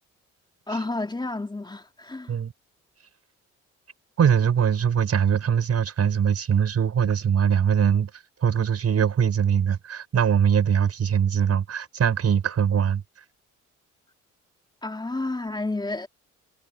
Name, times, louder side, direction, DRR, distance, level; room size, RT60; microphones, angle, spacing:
voice 1, 0.7-2.4 14.8-16.1, left 2 dB, 15° left, 3.1 m, -30 dB
voice 2, 4.2-8.1 8.4-13.0, right 8 dB, 55° right, 5.6 m, -22 dB
cardioid pair, 90°, 30 cm